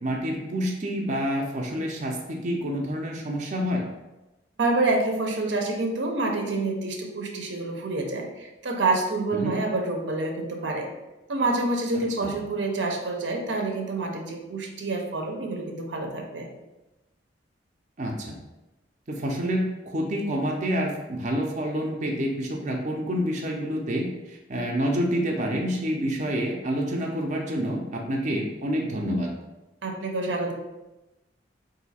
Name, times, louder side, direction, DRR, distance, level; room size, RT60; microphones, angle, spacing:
voice 1, 0.0-3.8 9.4-9.6 12.2-12.3 18.0-18.4 19.1-29.3, equal, 40° right, -1 dB, 0.5 m, -28 dB
voice 2, 4.6-10.9 11.3-16.5 29.8-30.5, right 2 dB, 80° right, 2 dB, 0.7 m, -27 dB
3.9 x 2.7 x 4.1 m, 1.0 s
head